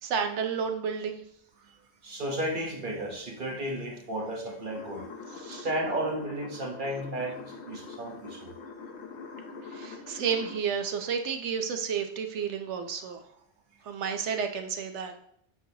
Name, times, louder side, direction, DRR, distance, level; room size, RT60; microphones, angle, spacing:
voice 1, 0.0-1.2 5.4-5.7 9.6-13.2 13.8-15.1, right 6 dB, 90° right, 6 dB, 1.0 m, -31 dB
voice 2, 2.0-5.1 5.5-8.5, right 1 dB, 50° right, -1 dB, 1.2 m, -33 dB
sound 1, 4.7-10.6, left 4 dB, 75° left, 0.9 m, -44 dB
8.2 x 4.1 x 2.8 m, 0.69 s
omnidirectional pair, 1.1 m